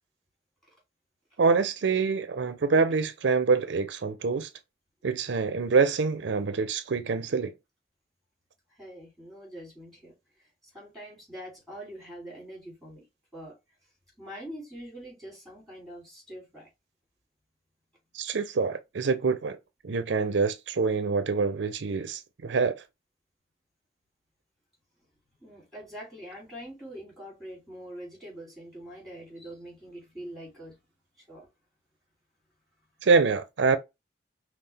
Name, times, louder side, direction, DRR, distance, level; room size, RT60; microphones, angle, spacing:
voice 1, 1.4-4.5 5.0-7.5 18.1-19.6 19.8-22.8 33.0-33.8, right 4 dB, 80° right, 0.5 m, -25 dB
voice 2, 8.7-13.0 13.3-13.6 14.2-16.7 25.4-30.9 31.2-31.5, equal, ahead, 3.3 m, -44 dB
5.6 x 2.4 x 3.4 m
head